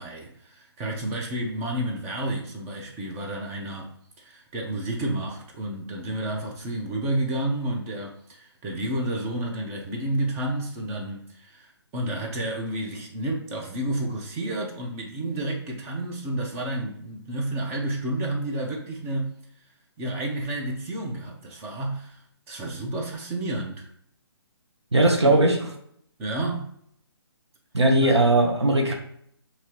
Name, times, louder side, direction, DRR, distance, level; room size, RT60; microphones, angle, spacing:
voice 1, 0.0-3.9 4.2-19.4 20.0-22.2 22.5-23.9 25.0-25.4 26.2-26.7, right 1 dB, 15° right, 0.7 m, -30 dB
voice 2, 24.9-25.6 27.7-28.9, right 1 dB, 85° right, 1.1 m, -19 dB
5.5 x 2.9 x 3.0 m
figure-of-eight pair, 145°, 14 cm